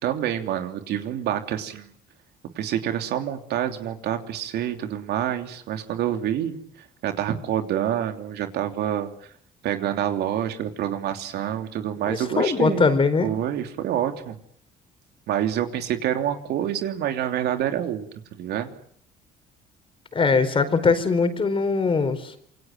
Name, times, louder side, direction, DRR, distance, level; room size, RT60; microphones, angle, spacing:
voice 1, 0.0-1.9 2.5-9.1 9.6-12.9 13.2-14.4 15.3-18.1 18.3-18.7, right 10 dB, 75° right, 6 dB, 3.1 m, -27 dB
voice 2, 12.1-13.3 20.1-22.3, left 4 dB, 30° left, 10 dB, 4.5 m, -21 dB
27.5 x 24.0 x 7.8 m, 0.66 s
cardioid pair, 110°, 17 cm